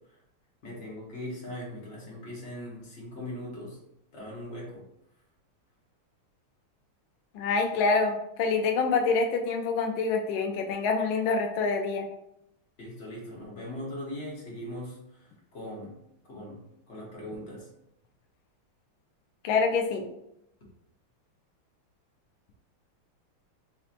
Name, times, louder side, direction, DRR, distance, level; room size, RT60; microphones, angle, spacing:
voice 1, 0.6-3.8 4.1-4.8 12.8-15.2 15.5-15.9 16.3-16.6 16.9-17.7, left 1 dB, 45° left, -4 dB, 1.0 m, -40 dB
voice 2, 7.3-12.0 19.4-20.0, left 4 dB, 75° left, 3 dB, 1.2 m, -26 dB
4.3 x 2.7 x 2.5 m, 0.79 s
omnidirectional pair, 2.4 m